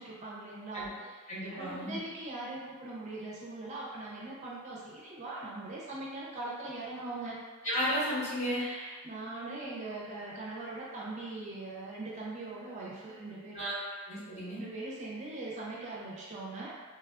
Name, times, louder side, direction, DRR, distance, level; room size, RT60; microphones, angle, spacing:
voice 1, 0.0-1.2 1.5-7.4 8.6-14.1 14.6-16.8, right 2 dB, 35° right, -5 dB, 0.5 m, -41 dB
voice 2, 1.3-2.0 7.6-8.6 13.5-13.7 14.1-14.6, equal, 35° left, -9 dB, 0.9 m, -33 dB
3.2 x 2.3 x 2.3 m, 1.3 s
head